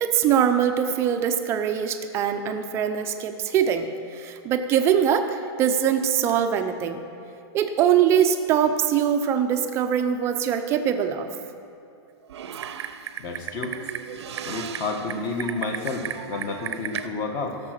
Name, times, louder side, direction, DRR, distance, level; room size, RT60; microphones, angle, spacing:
voice 1, 0.0-7.0 7.5-11.3, right 8 dB, 20° right, 7 dB, 0.6 m, -22 dB
Typing, 12.3-17.1, right 9 dB, 75° right, 0.8 m, -35 dB
voice 2, 13.2-13.8 14.4-17.6, left 3 dB, 25° left, 4 dB, 1.2 m, -30 dB
16.5 x 6.7 x 6.4 m, 2.6 s
supercardioid pair, 165°, 14 cm